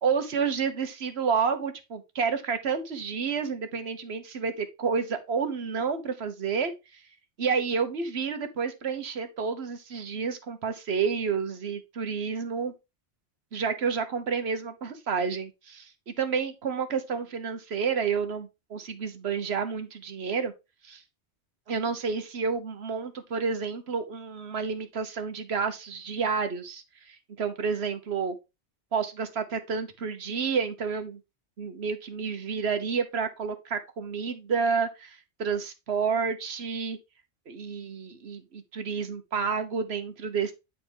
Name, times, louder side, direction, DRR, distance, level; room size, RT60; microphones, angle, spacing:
voice 1, 0.0-7.0 7.4-12.7 13.5-20.5 20.8-21.0 21.7-28.4 28.9-31.2 31.6-37.0 37.5-40.5, right 5 dB, 65° right, 1.3 m, -30 dB
9.3 x 4.2 x 3.5 m
omnidirectional pair, 1.2 m